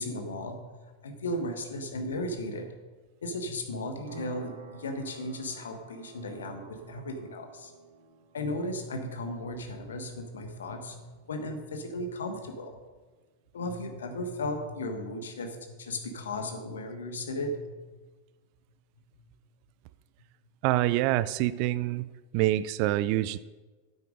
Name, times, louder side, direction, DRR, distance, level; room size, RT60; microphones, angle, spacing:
voice 1, 0.0-2.6 3.2-7.7 8.3-12.8 13.5-17.8, left 1 dB, 65° left, 5 dB, 1.5 m, -35 dB
sound 1, 4.1-12.4, right 4 dB, 60° right, 1.8 m, -52 dB
voice 2, 20.6-22.1 22.3-23.4, right 15 dB, 45° right, 16 dB, 0.4 m, -26 dB
8.9 x 8.4 x 5.2 m, 1.3 s
figure-of-eight pair, 90°, 0 cm